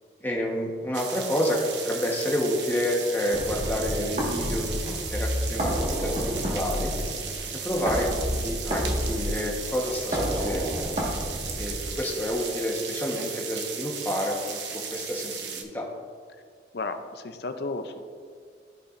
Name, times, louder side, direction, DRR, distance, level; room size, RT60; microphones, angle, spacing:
voice 1, 0.2-6.9 7.5-10.8 11.6-15.9, left 1 dB, 10° left, -2 dB, 1.1 m, -29 dB
sound 1, 0.9-15.6, right 6 dB, 80° right, 0.9 m, -36 dB
sound 2, 3.3-12.3, equal, 40° right, 1.7 m, -30 dB
voice 2, 16.7-18.0, left 3 dB, 65° left, 8 dB, 0.6 m, -33 dB
14.0 x 5.6 x 2.6 m, 2.1 s
head